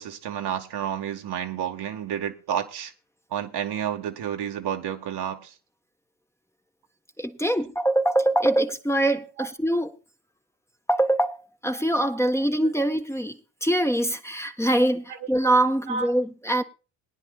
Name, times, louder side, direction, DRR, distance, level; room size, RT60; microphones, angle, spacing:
voice 1, 0.0-2.9 3.3-5.5 9.4-9.5 15.9-16.1, right 9 dB, 65° right, 1.9 m, -30 dB
voice 2, 7.2-9.9 10.9-11.4 11.6-16.6, right 1 dB, 5° left, 1.4 m, -23 dB
22.0 x 9.9 x 2.4 m
supercardioid pair, 60°, 43 cm